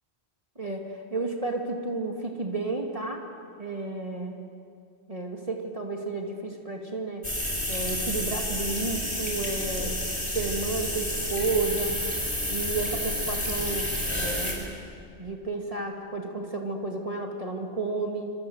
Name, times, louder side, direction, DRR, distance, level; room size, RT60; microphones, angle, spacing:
voice 1, 1.1-3.2 3.6-4.4 5.1-7.3 7.7-10.0 10.3-12.0 12.5-14.8 15.2-18.3, right 3 dB, 35° right, 1 dB, 2.3 m, -32 dB
sound 1, 7.2-14.5, left 1 dB, 25° left, 5.7 m, -30 dB
26.0 x 26.0 x 8.0 m, 2.4 s
omnidirectional pair, 1.1 m